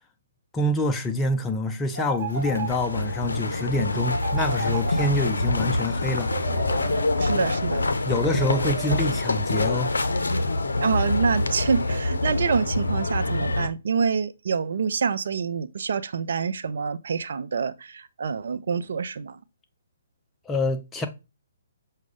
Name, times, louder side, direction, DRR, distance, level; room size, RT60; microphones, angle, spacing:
voice 1, 0.5-6.3 8.1-9.9 20.5-21.1, left 1 dB, 10° left, 0.4 m, -26 dB
sound 1, 1.9-3.2 4.1-5.6 6.3-7.5 8.2-9.4, right 4 dB, 25° right, 1.3 m, -35 dB
sound 2, 2.3-13.7, left 2 dB, 80° left, 0.5 m, -26 dB
voice 2, 7.2-7.9 10.8-19.4, right 6 dB, 60° right, 0.4 m, -26 dB
6.0 x 2.2 x 3.4 m
figure-of-eight pair, 135°, 0 cm